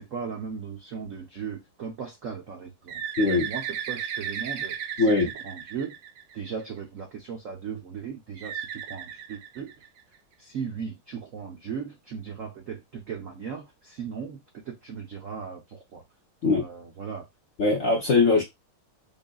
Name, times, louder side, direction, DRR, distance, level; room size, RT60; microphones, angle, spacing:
voice 1, 0.0-3.0 3.4-6.0 6.3-9.7 10.4-16.0 16.4-17.3, right 6 dB, 90° right, 0.7 m, -37 dB
Bird, 2.9-6.6 8.4-10.2, right 8 dB, 75° right, 1.1 m, -35 dB
voice 2, 3.2-3.5 5.0-5.3 16.4-16.6 17.6-18.4, left 3 dB, 70° left, 0.7 m, -21 dB
5.3 x 2.4 x 2.3 m
omnidirectional pair, 2.4 m